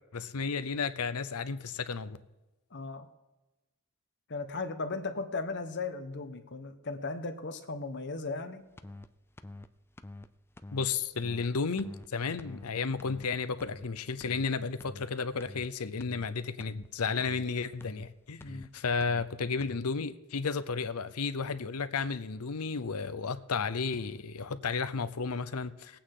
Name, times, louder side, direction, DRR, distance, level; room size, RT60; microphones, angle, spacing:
voice 1, 0.1-2.2 10.7-18.4 18.7-26.0, left 5 dB, 85° left, 12 dB, 0.7 m, -33 dB
voice 2, 2.7-3.1 4.3-8.7 18.4-18.7, left 3 dB, 55° left, 7 dB, 1.1 m, -36 dB
sound 1, 8.8-9.1 9.4-9.7 10.0-10.3 10.6-10.9 11.2-11.5 11.8-12.1 12.4-12.7 13.0-13.3 13.6-13.9 14.2-14.5 14.8-15.1 15.4-15.7 16.0-16.3 16.6-16.9 17.2-17.5 17.8-18.1 18.4-18.7 19.0-19.3 19.6-19.8, left 2 dB, 10° left, 0.4 m, -46 dB
20.0 x 8.6 x 3.9 m, 1.1 s
head